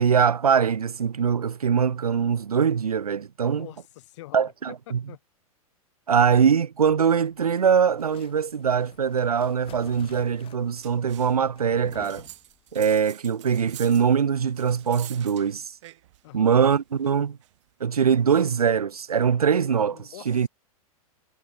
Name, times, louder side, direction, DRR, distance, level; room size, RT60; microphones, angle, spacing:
voice 1, 0.0-3.7 4.3-5.0 6.1-12.3 12.7-15.7 16.3-17.4 17.8-20.5, right 7 dB, 80° right, 0.7 m, -22 dB
voice 2, 3.4-5.2 16.2-16.6 19.9-20.5, left 16 dB, 50° left, 3.5 m, -45 dB
sound 1, 6.8-12.8, left 13 dB, 30° left, 4.6 m, -52 dB
sound 2, 10.7-11.4 11.9-16.3 16.6-18.4, right 15 dB, 55° right, 3.0 m, -47 dB
figure-of-eight pair, 100°, 19 cm